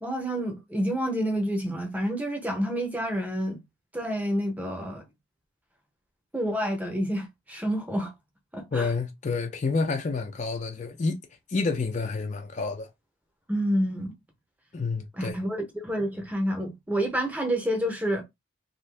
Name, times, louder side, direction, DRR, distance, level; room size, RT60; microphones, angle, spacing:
voice 1, 0.0-3.6 3.9-5.0 6.3-8.1 8.5-8.9 13.5-14.1 15.1-18.2, equal, 5° right, 0.7 m, -28 dB
voice 2, 8.7-11.2 11.5-12.9 14.7-15.4, left 4 dB, 35° left, 0.4 m, -29 dB
2.6 x 2.4 x 3.3 m
head